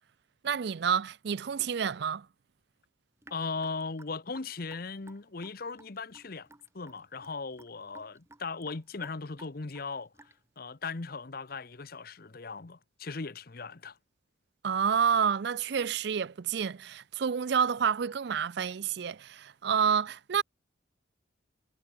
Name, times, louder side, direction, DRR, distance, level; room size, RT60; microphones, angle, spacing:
voice 1, 0.4-2.3 14.6-20.4, right 7 dB, 55° right, 0.4 m, -29 dB
Raindrop / Drip, 3.2-10.6, right 2 dB, 15° right, 7.3 m, -56 dB
voice 2, 3.3-6.5 6.7-14.0, left 4 dB, 50° left, 0.9 m, -38 dB
head